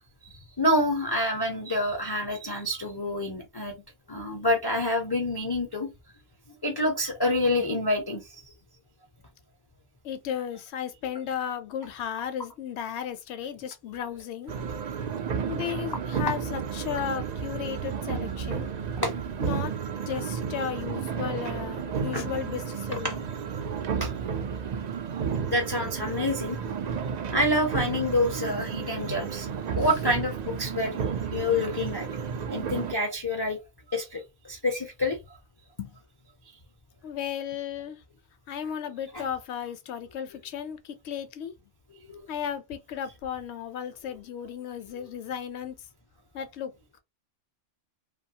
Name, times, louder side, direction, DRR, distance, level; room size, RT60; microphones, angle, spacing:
voice 1, 0.6-3.7 4.1-5.9 6.6-8.2 19.0-19.2 22.1-22.2 22.9-23.2 24.0-24.1 25.5-26.6 27.3-29.5 29.8-31.0 31.3-32.1 32.5-33.6 33.9-35.2 39.1-39.2 42.1-42.2, left 1 dB, 35° left, 0.4 m, -27 dB
voice 2, 10.0-14.5 15.5-18.7 19.4-19.7 20.1-23.2 35.8-35.9 37.0-38.0 38.5-41.5 42.3-45.8 46.3-46.7, left 8 dB, 70° left, 0.8 m, -34 dB
sound 1, 14.5-33.0, right 6 dB, 80° right, 0.3 m, -32 dB
2.7 x 2.3 x 2.8 m
omnidirectional pair, 1.3 m